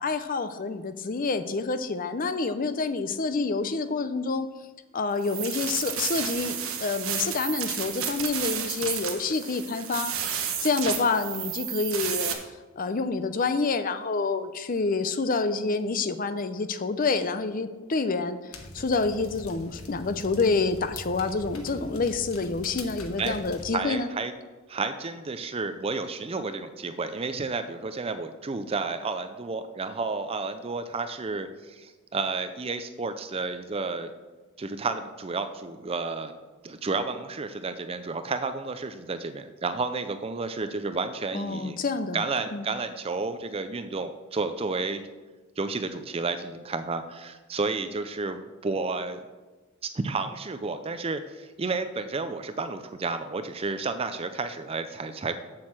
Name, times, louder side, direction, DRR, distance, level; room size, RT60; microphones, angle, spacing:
voice 1, 0.0-4.5 4.9-10.1 10.6-12.4 12.8-18.5 18.7-24.1 41.3-42.2 42.5-42.7, left 4 dB, 40° left, 11 dB, 0.6 m, -28 dB
sound 1, 5.2-12.3, right 8 dB, 70° right, 1.3 m, -32 dB
sound 2, 18.5-23.7, left 1 dB, 80° left, 1.3 m, -42 dB
voice 2, 23.7-24.3 24.7-34.1 34.6-36.3 36.6-41.8 42.1-45.0 45.6-49.2 49.8-55.4, right 3 dB, 25° right, 9 dB, 0.4 m, -31 dB
7.6 x 6.4 x 7.3 m, 1.2 s
head